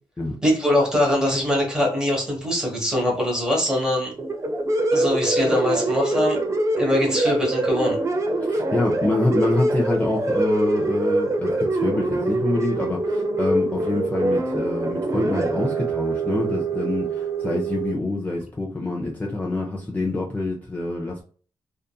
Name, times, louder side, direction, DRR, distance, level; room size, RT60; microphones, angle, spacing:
voice 1, 0.4-4.1 4.9-6.4 6.8-8.0, left 1 dB, 5° right, -1 dB, 1.2 m, -22 dB
sound 1, 4.2-17.9, right 2 dB, 35° right, 0.5 m, -24 dB
voice 2, 8.5-21.2, left 2 dB, 20° left, -2 dB, 0.5 m, -26 dB
2.6 x 2.5 x 2.3 m, 0.41 s
cardioid pair, 110°, 9 cm